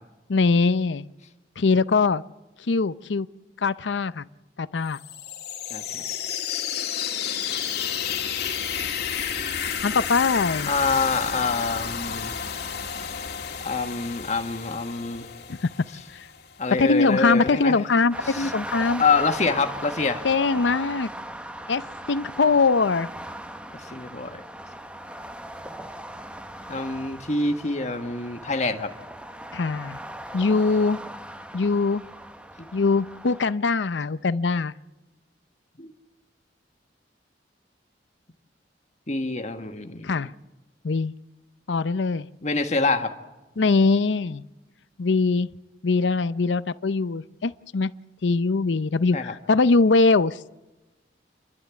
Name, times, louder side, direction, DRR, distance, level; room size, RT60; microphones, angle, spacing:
voice 1, 0.3-1.1 1.6-2.2 2.7-3.3 3.6-4.2 4.6-5.0 9.8-10.7 16.1-16.3 16.8-19.0 20.2-21.1 21.7-23.1 29.5-30.0 30.3-31.0 31.5-32.0 32.7-34.7 40.0-40.3 40.8-41.1 41.7-42.3 43.6-44.4 45.0-45.5 45.8-47.9 48.2-50.4, left 4 dB, 80° left, 15 dB, 0.6 m, -22 dB
sound 1, 4.9-16.6, left 8 dB, 60° left, 1.9 m, -31 dB
voice 2, 5.7-6.1 10.7-12.3 13.6-15.2 16.6-17.8 18.3-18.5 19.0-20.2 23.7-24.4 26.7-28.9 32.6-32.7 35.8-35.9 39.1-40.3 42.4-43.1 49.1-49.3, left 4 dB, 40° left, 6 dB, 1.5 m, -26 dB
sound 2, 18.1-33.5, right 1 dB, 5° right, 0.8 m, -39 dB
29.5 x 12.0 x 8.3 m, 1.1 s
head